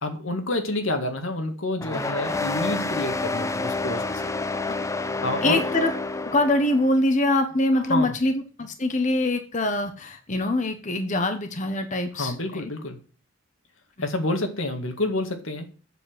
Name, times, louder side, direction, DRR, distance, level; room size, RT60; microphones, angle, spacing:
voice 1, 0.0-4.0 5.2-5.6 7.9-8.1 12.2-13.0 14.0-15.7, left 2 dB, 80° left, 5 dB, 1.9 m, -28 dB
sound 1, 1.8-6.9, left 3 dB, 15° left, 0.6 m, -29 dB
voice 2, 5.4-5.9 6.2-12.7, left 1 dB, 40° left, 7 dB, 1.1 m, -24 dB
7.9 x 7.1 x 7.8 m, 0.39 s
head